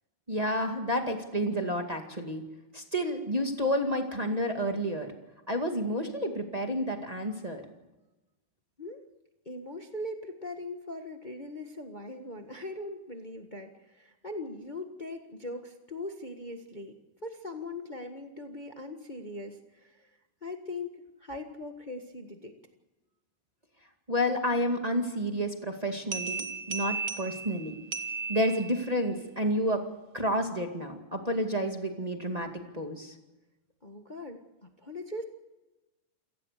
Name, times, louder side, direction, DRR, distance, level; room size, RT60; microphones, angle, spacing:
voice 1, 0.3-2.4 2.7-5.1 5.5-7.6 24.1-27.7 28.3-29.8 30.1-33.1, equal, 15° right, 3 dB, 1.5 m, -30 dB
voice 2, 9.4-16.9 17.2-20.1 20.4-20.9 21.2-22.5 33.8-35.2, left 2 dB, 70° left, 4 dB, 0.4 m, -40 dB
sound 1, 26.1-29.1, right 5 dB, 50° right, 1.1 m, -36 dB
28.5 x 18.0 x 6.8 m, 1.1 s
omnidirectional pair, 3.9 m